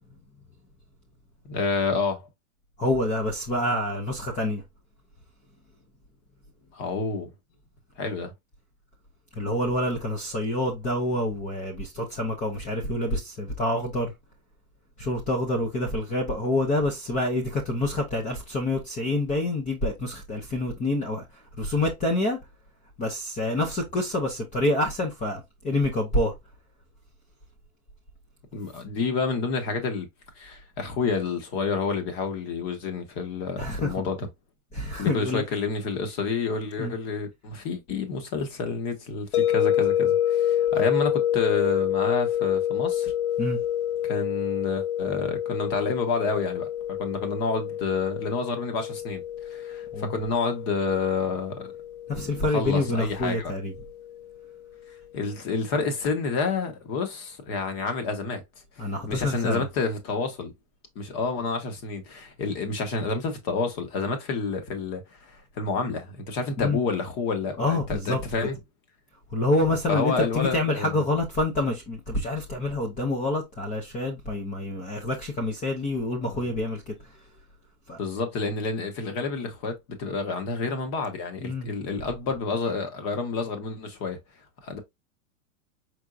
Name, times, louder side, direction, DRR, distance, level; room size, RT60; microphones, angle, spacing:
voice 1, 1.5-2.3 6.7-7.3 8.0-8.3 28.5-30.1 30.4-34.3 35.0-43.1 44.0-51.7 52.1-53.5 55.1-58.4 58.8-60.5 60.9-68.5 69.9-70.9 76.2-76.4 78.0-84.2 84.6-84.8, left 4 dB, 35° left, 1.2 m, -29 dB
voice 2, 2.8-4.6 9.3-14.1 15.0-22.4 23.0-26.3 33.6-33.9 34.7-35.4 36.8-36.9 43.4-43.6 49.9-50.2 52.1-53.7 58.8-59.7 66.6-66.8 67.6-68.2 69.3-77.1 77.9-78.0 81.4-81.7, left 1 dB, 15° left, 0.6 m, -27 dB
sound 1, 39.3-54.3, left 11 dB, 90° left, 0.6 m, -28 dB
4.6 x 3.5 x 2.4 m
supercardioid pair, 145°, 44 cm